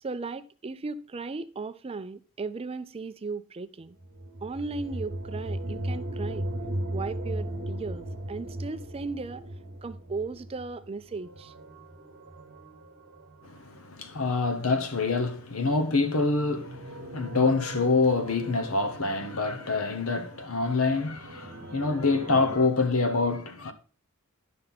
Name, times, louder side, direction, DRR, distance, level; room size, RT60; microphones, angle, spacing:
voice 1, 0.0-4.0 4.4-6.5 6.9-9.4 9.8-11.5, right 4 dB, 25° right, 0.4 m, -36 dB
sound 1, 4.0-14.7 15.9-22.7, right 1 dB, 50° right, 1.4 m, -38 dB
voice 2, 13.4-23.7, left 3 dB, 70° left, 1.0 m, -26 dB
11.5 x 5.4 x 4.0 m
head